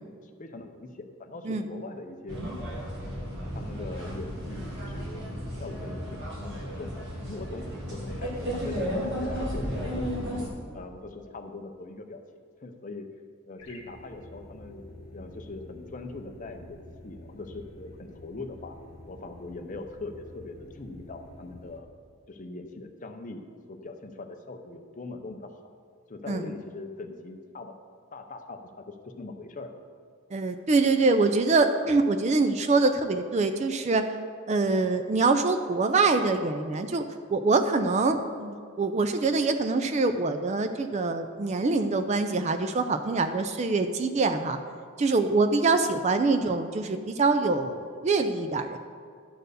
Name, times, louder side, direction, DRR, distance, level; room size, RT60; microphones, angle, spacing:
voice 1, 0.2-2.4 3.0-3.1 3.5-5.2 5.6-10.2 10.7-12.2 12.6-13.1 13.4-16.8 17.0-18.8 19.1-21.9 22.3-25.6 26.1-27.7 28.1-29.7 46.3-46.5, left 2 dB, 35° left, 6 dB, 0.6 m, -41 dB
sound 1, 2.3-10.5, equal, 50° right, 2.2 m, -34 dB
sound 2, 13.6-21.8, left 1 dB, 60° left, 1.1 m, -48 dB
voice 2, 30.3-34.0 34.5-37.0 37.3-44.6 45.0-48.8, right 3 dB, 30° right, 8 dB, 0.3 m, -24 dB
11.0 x 4.4 x 6.6 m, 2.2 s
head